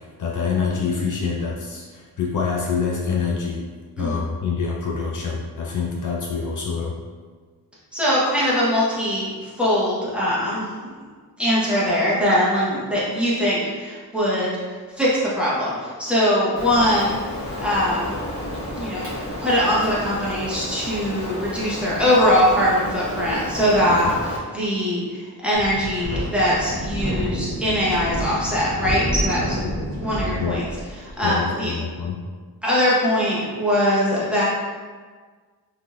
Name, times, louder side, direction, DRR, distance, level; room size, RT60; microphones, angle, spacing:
voice 1, 0.2-3.6 4.0-7.0 24.0-24.1 29.6-29.9 30.4-30.6 31.2-32.2, left 5 dB, 55° left, -2 dB, 0.5 m, -26 dB
voice 2, 7.9-9.3 9.6-10.7 11.4-14.6 15.0-17.2 17.6-18.2 18.7-19.1 19.4-29.6 30.0-30.6 31.0-31.7 32.6-34.4, equal, 5° right, -9 dB, 0.9 m, -21 dB
Rain, 16.6-24.4, left 1 dB, 40° left, 1.2 m, -31 dB
Wind, 25.5-31.1, equal, 45° right, 0.7 m, -28 dB
3.6 x 2.8 x 2.3 m, 1.5 s
wide cardioid pair, 105°, 36 cm